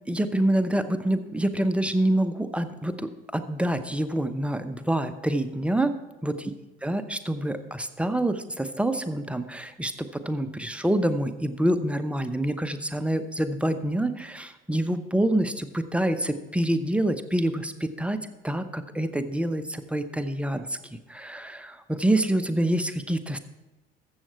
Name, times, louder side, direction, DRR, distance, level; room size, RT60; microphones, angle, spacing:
voice 1, 0.1-6.0 6.2-6.5 6.8-20.8 21.1-23.4, right 1 dB, 5° right, 9 dB, 0.8 m, -26 dB
13.5 x 7.4 x 4.6 m, 1.1 s
figure-of-eight pair, 55°, 30 cm